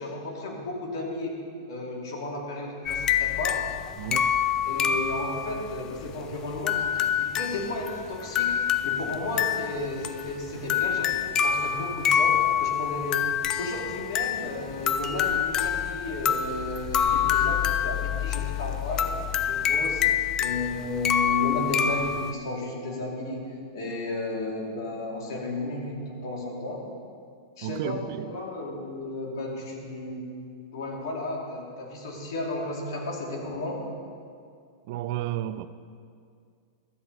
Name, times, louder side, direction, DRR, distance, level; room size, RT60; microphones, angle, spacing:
voice 1, 0.0-1.4 1.7-3.6 4.6-8.5 8.8-20.0 20.4-26.9 27.6-30.3 30.7-33.8, left 2 dB, 75° left, -1 dB, 2.5 m, -33 dB
sound 1, 2.9-22.3, left 8 dB, 25° left, 0.4 m, -27 dB
voice 2, 4.0-4.3 27.6-28.4 34.9-35.7, right 13 dB, 50° right, 13 dB, 0.4 m, -32 dB
12.5 x 9.4 x 4.0 m, 2.3 s
supercardioid pair, 145°, 2 cm